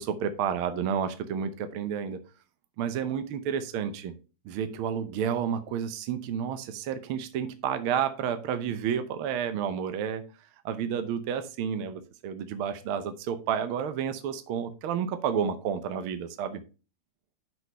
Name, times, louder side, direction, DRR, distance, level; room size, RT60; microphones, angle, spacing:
voice 1, 0.0-2.2 2.8-4.1 4.4-10.2 10.6-16.6, right 8 dB, 80° right, 9 dB, 1.2 m, -30 dB
6.2 x 5.6 x 5.5 m, 0.33 s
omnidirectional pair, 3.4 m